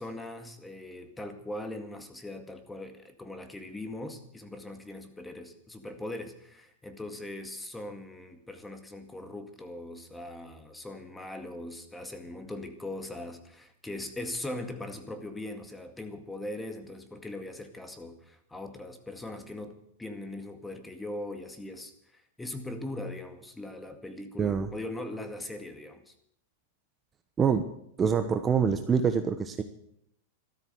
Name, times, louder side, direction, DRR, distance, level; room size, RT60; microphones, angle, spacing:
voice 1, 0.0-26.1, left 1 dB, 10° left, 7 dB, 2.1 m, -40 dB
voice 2, 24.4-24.7 27.4-27.7 28.0-29.6, right 6 dB, 20° right, 8 dB, 1.1 m, -25 dB
13.5 x 13.0 x 8.0 m, 0.74 s
hypercardioid pair, 125°, 0 cm